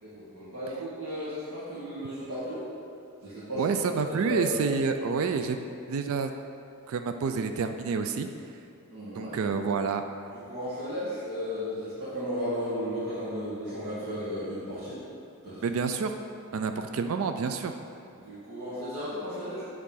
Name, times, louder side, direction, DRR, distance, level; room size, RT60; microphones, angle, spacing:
voice 1, 0.0-2.7 3.2-3.6 3.9-4.6 8.9-9.6 10.3-15.0 15.4-15.6 18.2-19.6, equal, 80° right, -11 dB, 1.8 m, -34 dB
voice 2, 3.6-5.6 5.9-6.3 6.9-8.3 9.2-10.1 15.6-16.2 16.5-17.7, right 5 dB, 65° right, 7 dB, 0.3 m, -28 dB
8.2 x 3.7 x 5.6 m, 2.6 s
head